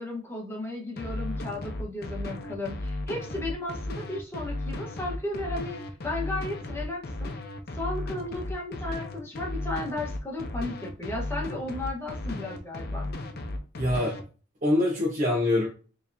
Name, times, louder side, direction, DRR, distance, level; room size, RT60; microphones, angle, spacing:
voice 1, 0.0-7.3 7.7-13.1, left 2 dB, 10° left, -1 dB, 1.2 m, -34 dB
sound 1, 1.0-14.2, left 1 dB, 50° left, 0.7 m, -35 dB
voice 2, 13.8-14.2 14.6-15.7, left 1 dB, 40° right, -5 dB, 1.2 m, -24 dB
4.7 x 3.3 x 2.7 m, 0.36 s
head